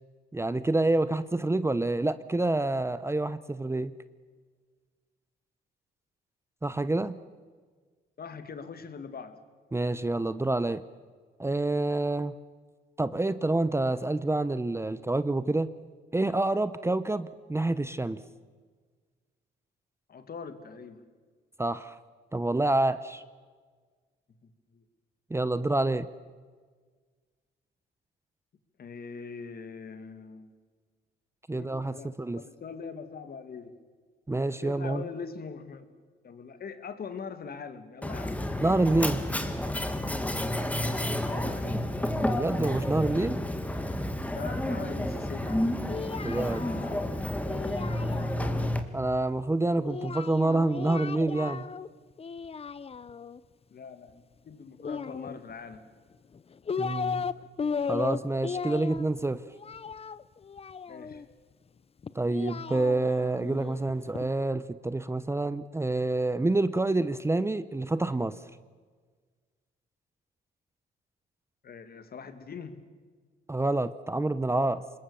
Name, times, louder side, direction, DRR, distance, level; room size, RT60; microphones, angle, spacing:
voice 1, 0.3-3.9 6.6-7.2 9.7-10.8 11.4-12.3 13.0-15.7 16.1-18.2 21.6-21.9 22.3-23.2 25.3-26.1 31.5-32.4 34.3-35.0 38.6-39.2 42.2-43.4 46.2-46.7 48.9-51.7 56.8-57.2 57.9-59.4 62.1-68.4 73.5-74.8, right 2 dB, 15° right, 14 dB, 0.8 m, -27 dB
voice 2, 8.2-9.4 20.1-21.0 24.7-24.8 28.8-30.5 31.5-33.7 34.6-35.9 36.2-38.4 40.8-41.8 44.3-45.5 53.7-55.8 60.9-61.2 71.6-72.8, left 5 dB, 50° left, 10 dB, 2.3 m, -42 dB
Mechanisms, 38.0-48.8, left 1 dB, 5° left, 2.2 m, -30 dB
Singing, 45.4-48.7 49.8-51.9 52.2-53.4 54.8-55.8 56.3-57.3 57.6-61.2 62.0-64.3, left 6 dB, 30° left, 0.7 m, -36 dB
25.5 x 21.0 x 7.1 m, 1.5 s
cardioid pair, 90°, 20 cm